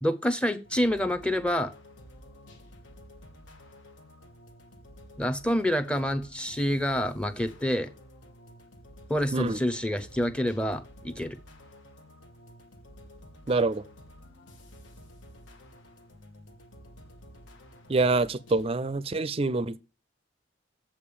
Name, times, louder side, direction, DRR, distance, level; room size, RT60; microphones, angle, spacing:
voice 1, 0.0-1.7 5.2-7.9 9.1-11.4, equal, 5° left, 0.7 m, -27 dB
sound 1, 0.6-18.7, left 1 dB, 75° left, 1.4 m, -51 dB
voice 2, 13.5-13.8 17.9-19.8, right 3 dB, 30° right, 0.4 m, -26 dB
7.5 x 5.2 x 6.9 m
head